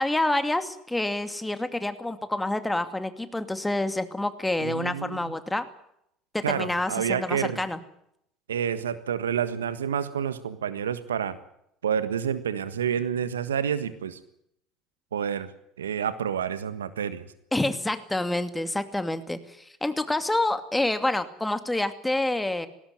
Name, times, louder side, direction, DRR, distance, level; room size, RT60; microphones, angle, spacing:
voice 1, 0.0-5.6 6.3-7.8 17.5-22.7, left 2 dB, 10° left, 10 dB, 2.5 m, -28 dB
voice 2, 4.6-5.3 6.4-7.6 8.5-11.4 11.8-14.2 15.1-15.5 15.8-17.2, right 8 dB, 85° right, 13 dB, 1.5 m, -29 dB
20.0 x 17.5 x 9.5 m, 0.74 s
hypercardioid pair, 65°, 0 cm